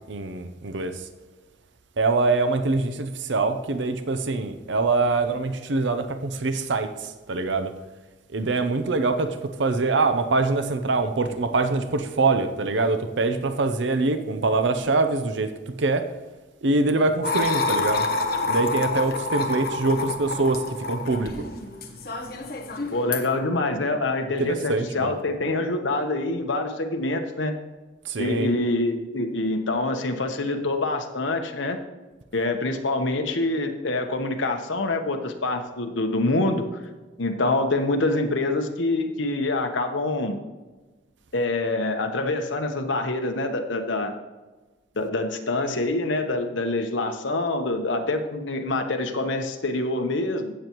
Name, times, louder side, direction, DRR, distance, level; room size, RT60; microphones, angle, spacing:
voice 1, 0.1-1.1 2.0-7.7 8.3-15.5 15.8-16.1 16.6-18.1 18.5-21.5 24.5-25.1 28.0-28.5, right 3 dB, 75° right, 8 dB, 0.7 m, -24 dB
sound 1, 17.2-23.3, left 3 dB, 50° left, 1.1 m, -28 dB
voice 2, 22.9-27.6 28.2-31.8 32.3-36.7 37.2-40.4 41.3-44.1 44.9-50.5, left 2 dB, 80° left, 5 dB, 1.1 m, -26 dB
15.5 x 6.9 x 3.1 m, 1.2 s
head